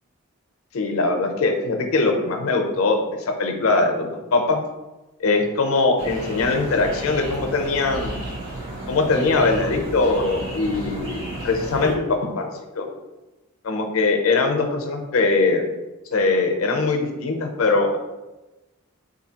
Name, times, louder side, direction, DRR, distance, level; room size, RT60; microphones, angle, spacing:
voice 1, 0.7-3.0 3.3-4.6 5.2-8.4 8.9-12.5 12.8-12.9 13.6-15.6 16.1-18.0, left 3 dB, 75° left, 4 dB, 0.5 m, -21 dB
sound 1, 6.0-11.9, right 1 dB, 90° right, 1.0 m, -33 dB
3.8 x 2.6 x 2.8 m, 1.1 s
head